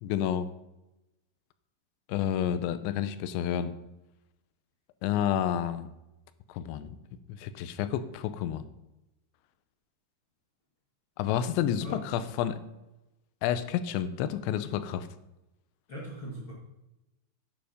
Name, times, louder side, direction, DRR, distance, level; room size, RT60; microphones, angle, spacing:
voice 1, 0.0-0.5 2.1-3.8 5.0-5.9 6.5-7.0 7.3-8.7 11.2-12.6 13.4-15.1, left 10 dB, 90° left, 12 dB, 3.1 m, -30 dB
voice 2, 11.8-12.2 15.9-16.5, equal, 40° left, -4 dB, 1.8 m, -40 dB
10.0 x 9.4 x 5.1 m, 0.95 s
omnidirectional pair, 5.1 m